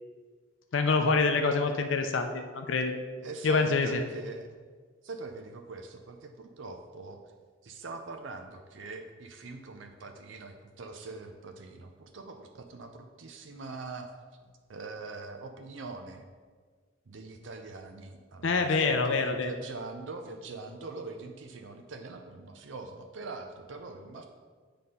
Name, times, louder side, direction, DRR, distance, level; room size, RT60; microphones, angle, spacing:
voice 1, 0.7-2.9 3.4-4.0 18.4-19.5, left 4 dB, 75° left, 6 dB, 0.5 m, -26 dB
voice 2, 3.2-4.5 5.0-7.2 7.6-14.1 14.7-16.2 17.1-24.2, right 3 dB, 70° right, 5 dB, 0.6 m, -43 dB
7.7 x 3.4 x 5.4 m, 1.6 s
head